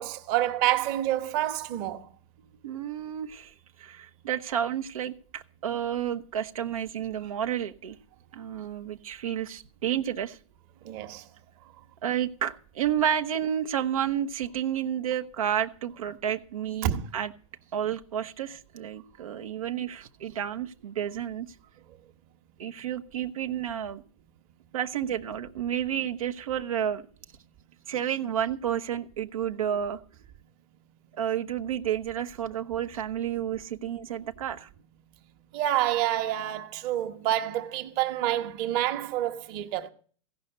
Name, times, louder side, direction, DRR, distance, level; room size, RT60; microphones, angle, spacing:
voice 1, 0.0-2.1 10.8-11.2 16.8-17.1 35.5-39.9, right 13 dB, 35° right, 1.2 m, -28 dB
voice 2, 2.6-8.0 8.3-10.4 12.0-17.3 17.7-21.5 22.6-24.0 24.7-27.0 27.9-30.0 31.1-34.7, right 9 dB, 85° right, 0.9 m, -31 dB
16.0 x 5.6 x 7.9 m
hypercardioid pair, 160°, 18 cm